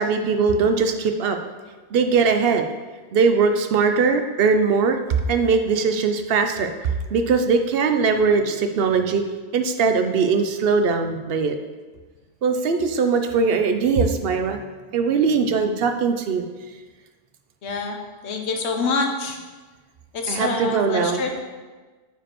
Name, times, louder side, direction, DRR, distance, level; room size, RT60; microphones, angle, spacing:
voice 1, 0.0-1.4 1.9-2.7 3.1-5.0 5.3-6.7 7.1-9.2 9.5-11.6 12.4-14.6 14.9-16.4 20.3-21.2, right 5 dB, 65° right, 6 dB, 0.8 m, -20 dB
voice 2, 17.6-18.0 18.2-19.4 20.1-21.4, left 4 dB, 85° left, 3 dB, 1.1 m, -26 dB
8.9 x 5.0 x 3.0 m, 1.3 s
omnidirectional pair, 1.1 m